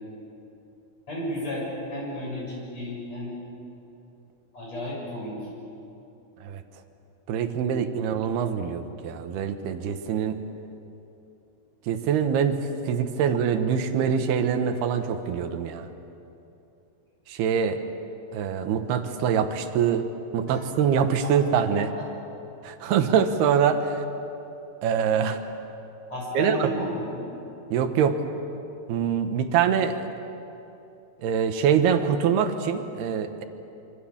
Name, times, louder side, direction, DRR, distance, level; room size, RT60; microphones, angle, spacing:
voice 1, 1.1-3.4 4.5-5.5 7.6-8.1 20.5-20.6 21.2-21.3 21.8-21.9 26.1-27.3, left 1 dB, 40° left, -3 dB, 8.7 m, -33 dB
voice 2, 7.3-10.4 11.9-12.6 12.9-15.9 17.3-17.8 18.3-20.1 20.3-21.9 22.6-24.0 24.8-25.4 26.3-26.7 27.7-28.2 28.9-30.1 31.2-33.4, right 7 dB, 75° right, 7 dB, 3.2 m, -24 dB
26.0 x 25.5 x 7.3 m, 2.8 s
omnidirectional pair, 4.6 m